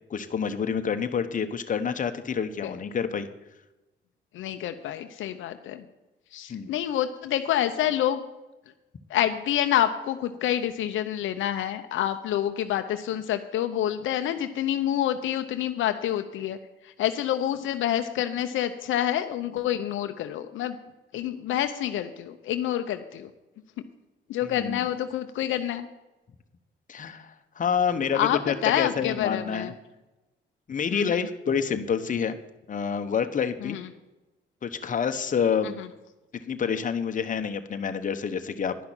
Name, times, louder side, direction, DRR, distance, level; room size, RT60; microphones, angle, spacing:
voice 1, 0.1-3.3 6.5-6.7 24.4-24.8 26.9-29.7 30.7-32.4 32.7-33.8 34.6-35.8 36.3-38.8, left 7 dB, 40° left, 7 dB, 1.1 m, -28 dB
voice 2, 4.3-5.8 6.3-8.2 9.1-16.6 16.8-20.8 21.1-23.3 24.3-25.9 28.1-29.7 30.9-31.3 33.6-33.9 35.6-35.9, left 11 dB, 80° left, 8 dB, 0.7 m, -27 dB
11.0 x 5.9 x 8.9 m, 1.0 s
cardioid pair, 90°, 20 cm